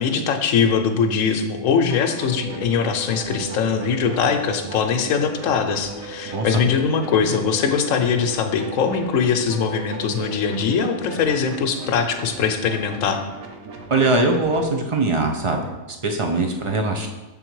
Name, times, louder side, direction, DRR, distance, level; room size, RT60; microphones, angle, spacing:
voice 1, 0.0-13.2, left 6 dB, 75° left, 6 dB, 1.0 m, -21 dB
sound 1, 1.9-14.7, right 3 dB, 90° right, 1.2 m, -39 dB
Wind instrument woodwind instrument, 2.1-11.4, right 4 dB, 60° left, 0.6 m, -38 dB
voice 2, 6.3-6.6 13.9-17.1, right 2 dB, 55° right, 3 dB, 0.3 m, -22 dB
6.8 x 3.9 x 4.6 m, 1.1 s
omnidirectional pair, 1.4 m